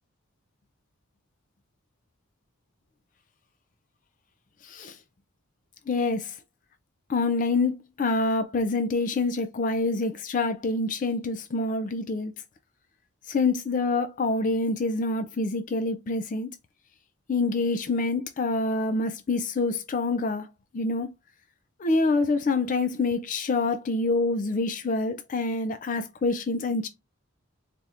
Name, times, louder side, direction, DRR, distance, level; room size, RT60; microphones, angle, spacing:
voice 1, 4.6-5.0 5.9-6.4 7.1-12.3 13.3-16.5 17.3-20.5 20.7-21.1 21.8-26.9, left 3 dB, 35° left, 0.3 m, -26 dB
4.1 x 3.4 x 2.4 m
head